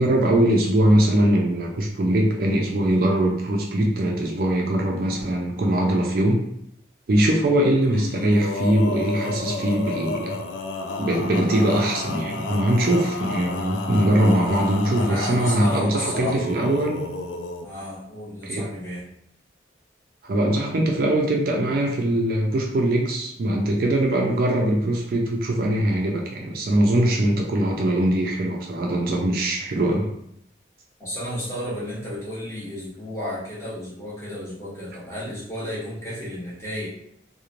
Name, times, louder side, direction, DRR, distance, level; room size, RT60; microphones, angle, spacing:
voice 1, 0.0-6.4 7.1-10.4 11.0-17.1 18.4-18.7 20.2-30.1, right 1 dB, 50° right, 0 dB, 0.4 m, -21 dB
Male singing, 7.9-17.7, left 3 dB, 90° left, 0.3 m, -31 dB
voice 2, 14.0-16.4 17.6-19.1 31.0-36.9, left 1 dB, 15° left, -8 dB, 0.9 m, -33 dB
3.0 x 2.1 x 2.5 m, 0.74 s
head